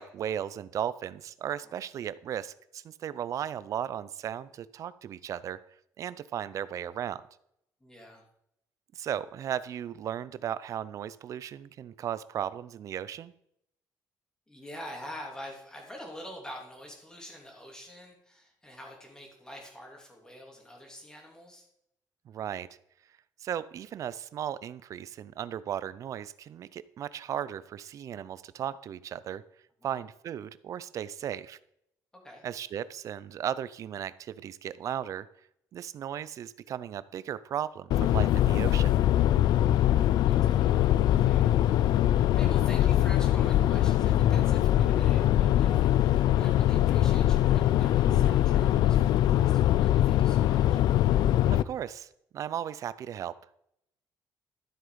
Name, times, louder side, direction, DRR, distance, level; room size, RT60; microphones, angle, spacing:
voice 1, 0.0-5.6 6.0-7.2 8.9-13.3 22.3-22.7 23.4-29.4 29.8-31.6 32.4-35.3 35.7-39.0 51.5-53.3, right 10 dB, 50° right, 17 dB, 0.5 m, -36 dB
voice 2, 7.8-8.2 14.5-21.7 29.8-30.0 32.2-32.4 39.7-50.8, equal, 10° left, 0 dB, 3.0 m, -46 dB
sound 1, 37.9-51.6, left 12 dB, 80° left, 0.5 m, -23 dB
13.0 x 7.7 x 5.1 m, 0.77 s
cardioid pair, 165°, 7 cm